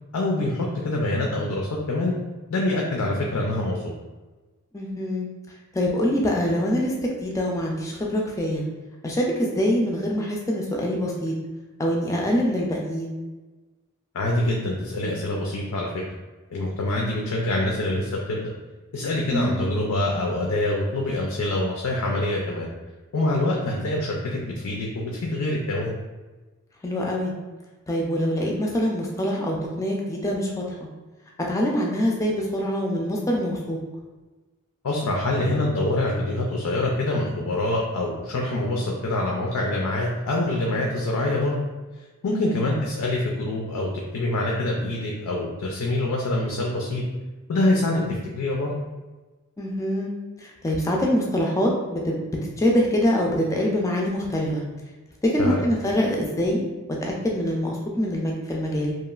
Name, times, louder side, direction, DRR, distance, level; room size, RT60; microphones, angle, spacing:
voice 1, 0.1-2.1 2.5-3.8 14.1-16.0 16.5-18.5 18.9-22.7 23.1-25.9 34.8-41.6 42.2-47.0 47.5-48.0 48.4-48.7 55.4-55.6, left 1 dB, 90° left, -1 dB, 0.4 m, -25 dB
voice 2, 4.7-5.3 5.7-8.6 9.0-11.3 11.8-13.1 19.3-19.6 26.8-27.3 27.9-30.6 31.5-33.8 42.3-42.7 48.0-48.1 49.6-50.1 50.4-54.6 55.2-56.6 57.0-58.9, equal, 15° left, -1 dB, 0.3 m, -24 dB
2.9 x 2.3 x 2.3 m, 1.2 s
head